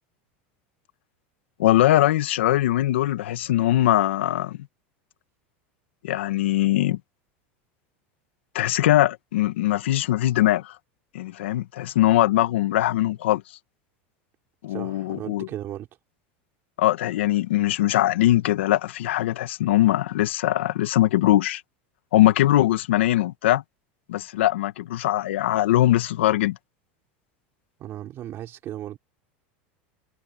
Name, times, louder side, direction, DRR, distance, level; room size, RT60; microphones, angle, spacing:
voice 1, 1.6-4.7 6.0-7.0 8.5-10.8 11.1-13.4 14.6-15.5 16.8-21.6 22.1-23.6 24.1-26.6, left 14 dB, 90° left, 1.7 m, -21 dB
voice 2, 14.7-15.9 27.8-29.0, right 12 dB, 40° right, 4.7 m, -36 dB
supercardioid pair, 130°, 6 cm